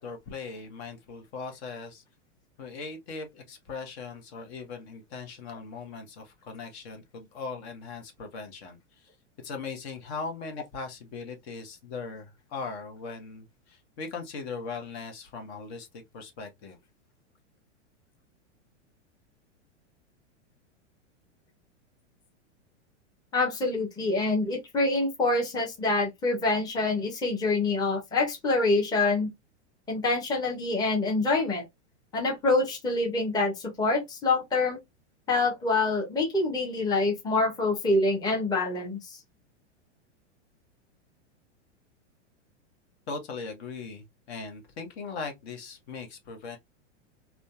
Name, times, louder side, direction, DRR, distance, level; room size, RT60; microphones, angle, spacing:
voice 1, 0.0-2.0 2.6-8.8 9.4-16.8 43.1-46.6, left 4 dB, 60° left, 1.0 m, -39 dB
voice 2, 23.3-29.3 29.9-31.6 32.1-34.8 35.3-39.2, left 2 dB, 10° left, 0.7 m, -26 dB
2.5 x 2.2 x 2.3 m
hypercardioid pair, 125°, 36 cm